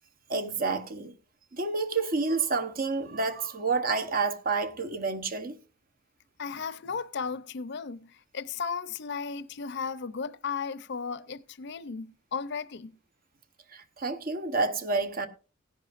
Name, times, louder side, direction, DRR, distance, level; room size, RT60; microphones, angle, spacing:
voice 1, 0.3-1.1 1.5-5.6 13.7-15.3, right 4 dB, 45° right, 1.0 m, -29 dB
voice 2, 6.4-12.9, left 5 dB, 60° left, 0.6 m, -35 dB
17.0 x 10.5 x 2.5 m
head